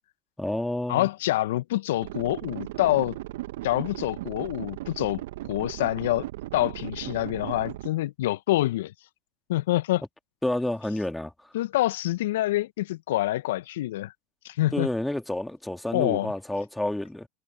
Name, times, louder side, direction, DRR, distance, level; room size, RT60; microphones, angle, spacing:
voice 1, 0.4-1.1 10.4-11.5 14.7-17.3, left 1 dB, 5° left, 2.6 m, -29 dB
voice 2, 0.9-3.2 3.6-5.2 5.5-6.3 6.5-8.9 9.5-10.0 11.5-14.1 14.4-14.9 15.9-16.3, left 16 dB, 70° left, 1.4 m, -26 dB
sound 1, 2.0-7.9, right 16 dB, 65° right, 1.4 m, -37 dB
hypercardioid pair, 90°, 0 cm